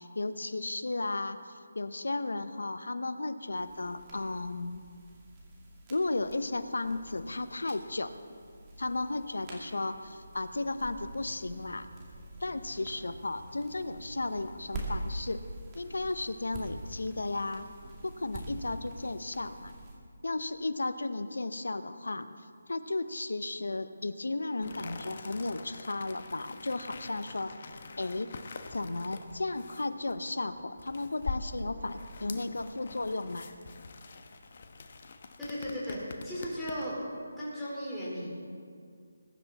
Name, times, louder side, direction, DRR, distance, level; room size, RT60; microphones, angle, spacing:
voice 1, 0.0-4.8 5.9-8.1 8.8-11.9 12.4-15.4 15.7-17.7 18.0-19.7 20.2-22.3 22.7-27.5 28.0-28.3 28.7-33.5, left 2 dB, 80° left, 11 dB, 0.9 m, -34 dB
sound 1, 3.5-19.9, right 1 dB, 20° right, 2.5 m, -45 dB
sound 2, 24.6-37.0, left 3 dB, 45° left, 1.1 m, -44 dB
voice 2, 35.4-37.0 37.4-38.3, equal, 5° left, -10 dB, 4.2 m, -36 dB
21.5 x 10.5 x 4.2 m, 2.2 s
figure-of-eight pair, 160°, 0 cm